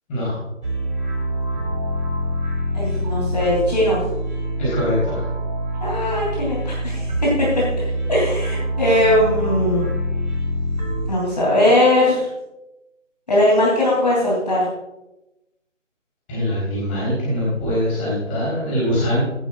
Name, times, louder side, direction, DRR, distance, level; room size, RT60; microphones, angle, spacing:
sound 1, 0.6-11.1, right 1 dB, 35° right, 3.3 m, -25 dB
voice 1, 2.7-4.0 5.8-7.6 8.1-9.8 11.1-12.3 13.3-14.7, left 1 dB, 30° left, -5 dB, 3.1 m, -19 dB
voice 2, 4.6-5.2 16.3-19.2, equal, 10° left, -9 dB, 3.9 m, -22 dB
15.0 x 12.0 x 2.5 m, 0.95 s
figure-of-eight pair, 170°, 39 cm